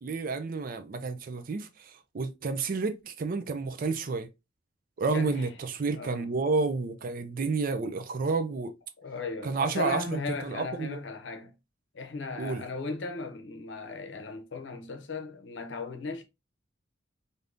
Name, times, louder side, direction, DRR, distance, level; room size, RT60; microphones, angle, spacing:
voice 1, 0.0-1.7 2.1-4.3 5.0-8.7 9.4-11.0 12.4-12.6, right 4 dB, 45° right, 0.4 m, -30 dB
voice 2, 5.1-5.5 5.9-6.3 9.0-11.5 11.9-16.2, left 4 dB, 65° left, 0.7 m, -37 dB
3.4 x 2.7 x 2.5 m
head